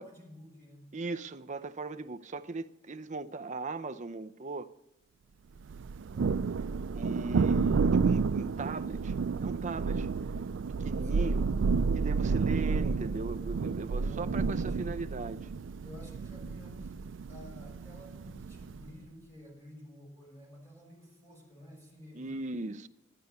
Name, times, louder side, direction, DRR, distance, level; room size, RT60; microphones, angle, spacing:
voice 1, 0.0-0.9 6.1-6.5 11.0-11.5 13.9-15.0 15.8-22.4, left 1 dB, 15° left, 6.6 m, -51 dB
voice 2, 0.9-4.7 6.9-9.1 9.4-10.1 10.8-11.5 11.9-15.5 22.1-22.9, right 3 dB, 40° right, 0.7 m, -38 dB
Thunder, 5.7-18.9, right 5 dB, 75° right, 0.4 m, -30 dB
13.0 x 11.5 x 6.7 m
head